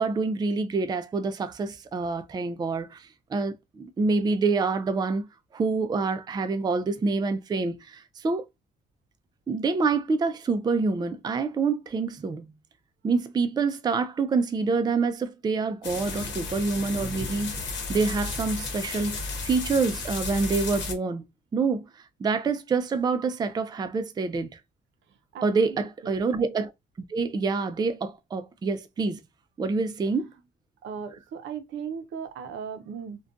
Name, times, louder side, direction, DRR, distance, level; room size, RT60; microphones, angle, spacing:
voice 1, 0.0-5.3 5.5-8.4 9.5-12.5 13.0-21.2 21.5-21.8 22.2-24.5 25.4-26.7 27.1-29.2 29.6-30.3, right 4 dB, 20° right, 0.3 m, -27 dB
sound 1, 15.8-20.9, left 3 dB, 70° left, 0.9 m, -33 dB
voice 2, 25.3-26.1 30.8-33.2, right 6 dB, 70° right, 0.5 m, -37 dB
2.5 x 2.2 x 2.5 m
cardioid pair, 90°, 20 cm